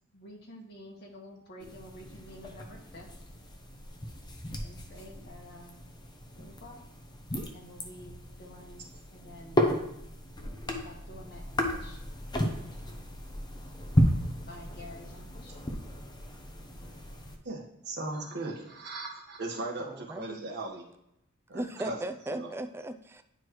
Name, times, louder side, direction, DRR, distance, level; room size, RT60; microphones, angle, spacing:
voice 1, 0.1-3.1 4.6-5.8 6.3-6.8 7.5-9.8 10.8-11.4 11.7-12.0 14.5-15.6, equal, 50° left, 0 dB, 1.5 m, -49 dB
sound 1, 1.6-17.4, equal, 20° left, 0.7 m, -34 dB
voice 2, 17.4-20.8 21.5-22.0 22.3-22.5, right 2 dB, 50° right, 0 dB, 1.4 m, -38 dB
voice 3, 19.9-20.4 21.5-23.2, right 1 dB, 10° right, 8 dB, 0.3 m, -37 dB
9.7 x 4.5 x 3.1 m, 0.81 s
head